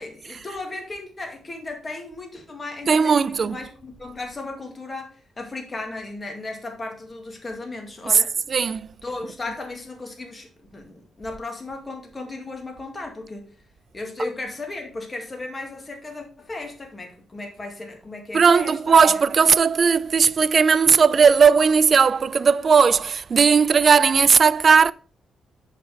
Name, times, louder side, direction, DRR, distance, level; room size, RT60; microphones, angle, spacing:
voice 1, 0.0-8.5 9.0-13.5 13.9-19.2, left 2 dB, 25° left, 2.0 m, -35 dB
voice 2, 2.9-3.6 8.5-8.9 18.3-24.9, right 5 dB, 45° right, 0.4 m, -17 dB
6.3 x 5.7 x 4.5 m
cardioid pair, 95°, 0 cm